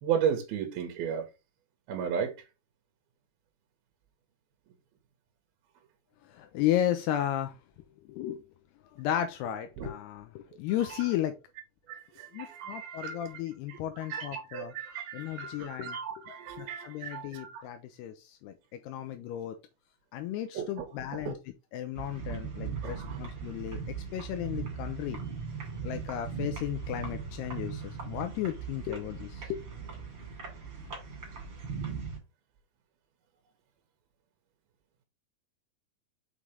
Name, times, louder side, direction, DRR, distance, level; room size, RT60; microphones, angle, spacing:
voice 1, 0.0-1.3 1.9-2.3 9.8-9.9 11.9-13.4 13.7-13.8 14.1-17.7 20.5-20.9 21.2-21.4 22.8-23.2, right 8 dB, 70° right, 2.8 m, -34 dB
voice 2, 6.3-7.6 8.1-8.4 8.9-11.3 12.3-14.7 15.1-16.0 16.6-19.6 20.1-21.4 21.7-25.2 25.8-29.6, left 11 dB, 85° left, 2.7 m, -34 dB
sound 1, 21.9-32.2, right 6 dB, 35° right, 2.8 m, -39 dB
6.1 x 5.7 x 3.3 m
omnidirectional pair, 4.8 m